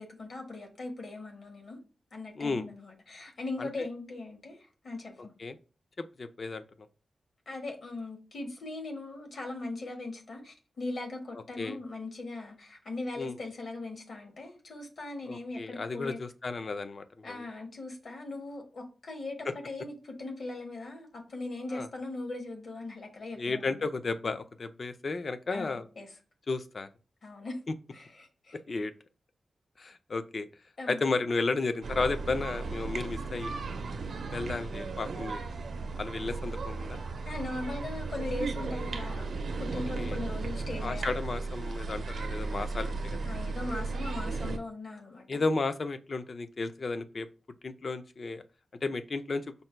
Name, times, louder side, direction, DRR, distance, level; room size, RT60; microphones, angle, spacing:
voice 1, 0.0-1.8 2.1-5.1 7.5-16.2 17.2-23.9 25.5-26.1 27.2-27.6 27.9-28.6 30.8-31.0 37.2-39.3 39.6-41.2 43.2-45.4, left 2 dB, 55° left, 1.2 m, -39 dB
voice 2, 2.4-2.7 3.6-3.7 5.4-5.6 6.0-6.6 11.6-11.8 13.2-13.4 15.3-17.4 19.5-19.6 21.7-21.9 23.4-25.9 26.5-26.9 28.7-28.9 29.8-30.5 30.9-33.5 34.3-35.4 36.0-37.0 39.7-40.2 40.8-43.3 45.3-47.3 47.6-48.4 48.8-49.5, left 3 dB, 40° left, 0.4 m, -33 dB
sound 1, 31.8-44.6, right 3 dB, 70° right, 0.5 m, -35 dB
5.3 x 2.2 x 4.4 m
wide cardioid pair, 175°, 0 cm